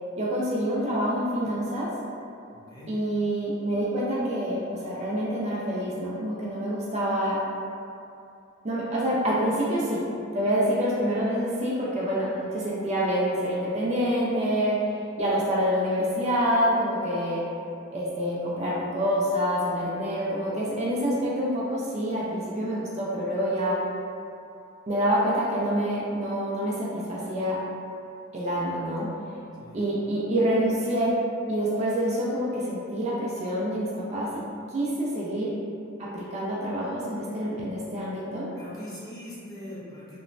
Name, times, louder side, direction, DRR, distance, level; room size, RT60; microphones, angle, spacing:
voice 1, 0.2-1.9 2.9-7.4 8.6-10.0 10.3-14.8 15.2-17.4 17.9-23.7 24.9-27.6 28.3-29.1 29.7-31.1 31.5-34.4 34.7-35.5 36.0-38.5, equal, 30° right, -6 dB, 0.3 m, -27 dB
voice 2, 2.5-2.9 29.6-29.8 38.6-40.2, left 1 dB, 20° left, -9 dB, 0.5 m, -42 dB
2.9 x 2.1 x 2.5 m, 2.6 s
head